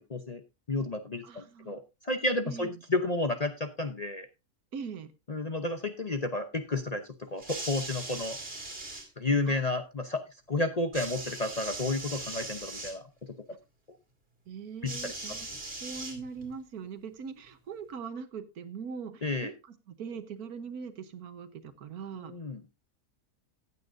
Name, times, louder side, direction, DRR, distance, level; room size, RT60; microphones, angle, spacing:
voice 1, 0.1-0.4 0.7-4.3 5.3-8.4 9.2-13.0 13.5-13.6 14.8-15.2 19.2-19.5 22.2-22.6, left 2 dB, 35° left, 6 dB, 0.7 m, -31 dB
voice 2, 1.2-1.8 2.4-2.8 4.7-5.1 9.5-9.8 14.5-15.5 15.8-22.3, right 6 dB, 70° right, 11 dB, 1.5 m, -41 dB
sound 1, 7.4-9.1 10.9-13.0 14.9-16.5 17.5-17.6, right 2 dB, 35° right, 2.8 m, -40 dB
15.0 x 8.9 x 2.6 m, 0.25 s
omnidirectional pair, 1.7 m